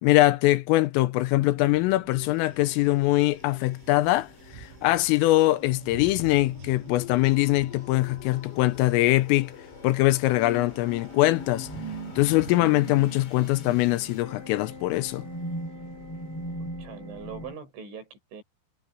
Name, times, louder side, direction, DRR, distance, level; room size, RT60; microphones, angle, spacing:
voice 1, 0.0-4.3 4.6-9.5 9.8-11.7 12.2-15.2, left 18 dB, 85° left, 3.4 m, -22 dB
sound 1, 1.3-17.5, equal, 30° left, 3.6 m, -41 dB
sound 2, 2.3-12.6, right 7 dB, 90° right, 7.2 m, -50 dB
voice 2, 16.6-18.4, right 6 dB, 65° right, 8.0 m, -42 dB
omnidirectional pair, 5.9 m